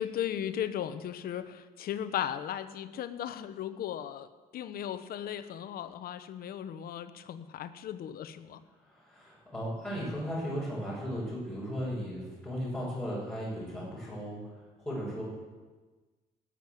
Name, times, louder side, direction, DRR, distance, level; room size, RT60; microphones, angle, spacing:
voice 1, 0.0-8.6, left 10 dB, 60° left, 12 dB, 1.0 m, -36 dB
voice 2, 8.7-15.2, equal, 10° left, -10 dB, 6.4 m, -36 dB
18.0 x 7.6 x 7.8 m, 1.3 s
cardioid pair, 110°, 17 cm